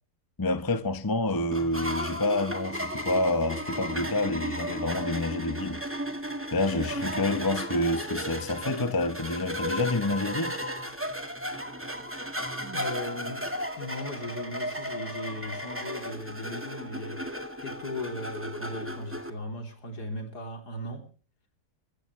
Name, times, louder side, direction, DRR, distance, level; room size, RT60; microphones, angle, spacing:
voice 1, 0.4-5.8 6.5-10.6, left 2 dB, 15° left, 0.8 m, -28 dB
sound 1, 1.5-19.3, equal, 10° right, 1.8 m, -34 dB
voice 2, 12.6-21.1, left 1 dB, 75° left, 3.9 m, -38 dB
24.0 x 14.5 x 3.3 m
omnidirectional pair, 1.7 m